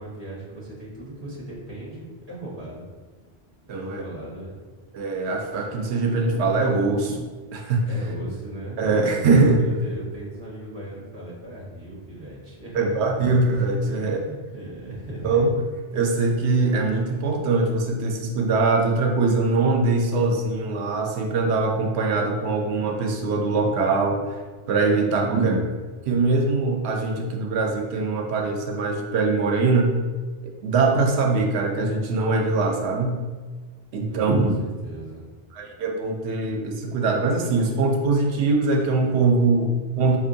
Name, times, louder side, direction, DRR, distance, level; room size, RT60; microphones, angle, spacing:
voice 1, 0.0-2.8 3.7-4.6 7.9-13.2 13.9-15.4 25.0-25.5 34.0-35.2, right 1 dB, 25° right, -7 dB, 1.2 m, -38 dB
voice 2, 3.7-4.0 4.9-7.3 7.5-7.8 8.8-9.7 12.7-14.2 15.2-24.4 24.7-25.6 26.1-29.9 30.4-33.2 33.9-34.6 35.5-40.2, right 3 dB, 85° right, 2 dB, 0.9 m, -22 dB
4.3 x 2.8 x 2.6 m, 1.4 s
omnidirectional pair, 1.1 m